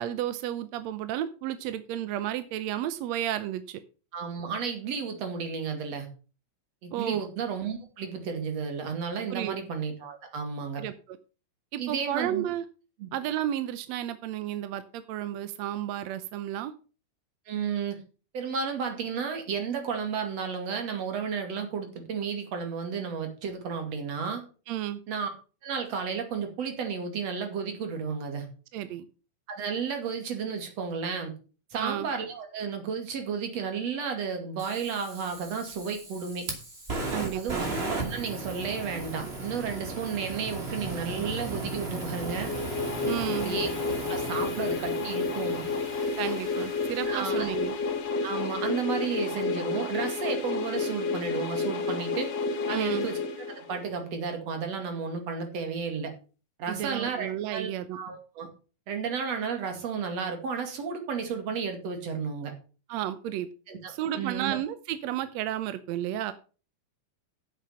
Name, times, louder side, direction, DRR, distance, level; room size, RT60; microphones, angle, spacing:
voice 1, 0.0-3.8 6.9-7.3 9.3-9.6 10.8-11.2 11.7-12.7 13.1-16.7 24.7-25.0 28.7-29.1 31.8-32.1 37.1-37.7 43.1-43.5 46.2-47.7 52.7-53.1 56.7-58.0 62.9-63.5 63.9-66.3, right 12 dB, 75° right, 12 dB, 1.6 m, -32 dB
voice 2, 4.1-6.1 6.8-10.8 11.8-12.4 13.0-13.1 17.5-18.0 18.3-24.4 25.1-25.3 25.6-28.5 29.5-31.3 31.7-36.5 37.3-37.6 37.9-42.5 43.4-43.7 44.1-45.7 47.0-47.5 48.2-52.3 52.7-53.2 53.5-56.1 56.6-58.5 58.9-62.5 63.7-64.6, right 6 dB, 50° right, 5 dB, 3.2 m, -32 dB
Fire, 34.6-47.7, right 2 dB, 20° right, 2.4 m, -37 dB
sound 1, 42.2-54.0, left 4 dB, 55° left, 2.2 m, -31 dB
10.0 x 7.6 x 5.6 m, 0.35 s
omnidirectional pair, 3.9 m